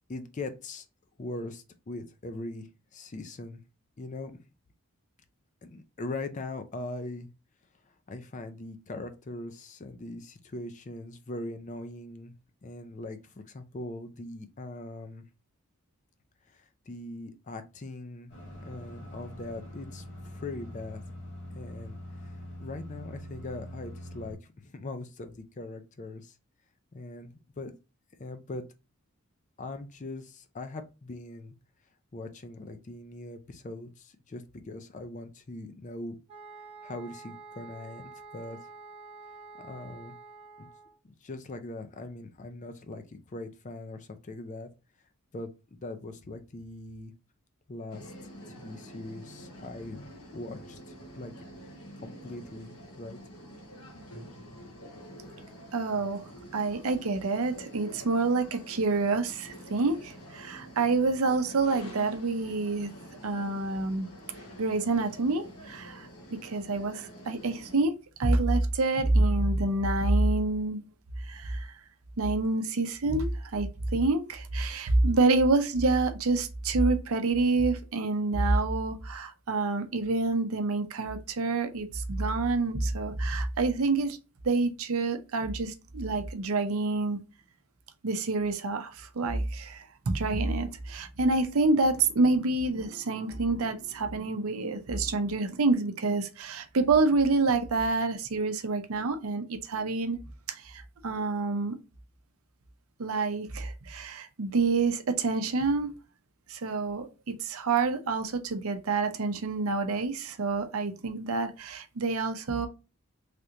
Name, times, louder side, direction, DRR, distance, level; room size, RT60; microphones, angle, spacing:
voice 1, 0.1-0.9 1.2-3.6 4.0-4.4 5.6-7.3 8.1-12.3 12.6-15.2 16.5-18.3 18.7-21.0 21.5-22.0 22.2-22.3 22.6-26.4 26.9-27.7 28.2-28.6 29.6-31.6 32.1-36.2 36.8-38.6 39.6-40.1 40.6-40.7 41.0-44.7 45.3-47.1 47.7-48.1 48.5-51.3 52.0-53.2, left 2 dB, 35° left, 0.4 m, -41 dB
sound 1, 18.3-24.3, equal, 50° left, 1.5 m, -43 dB
sound 2, 36.3-41.0, right 4 dB, 25° right, 1.0 m, -48 dB
sound 3, 47.9-67.8, equal, 90° left, 1.1 m, -47 dB
voice 2, 55.7-56.2 56.5-62.9 63.2-64.1 64.6-67.9 68.2-70.8 71.2-71.8 72.2-84.2 84.4-87.2 88.0-100.2 100.5-101.8 103.0-105.9 106.5-112.7, right 3 dB, 75° right, 0.6 m, -27 dB
3.3 x 2.9 x 2.5 m
head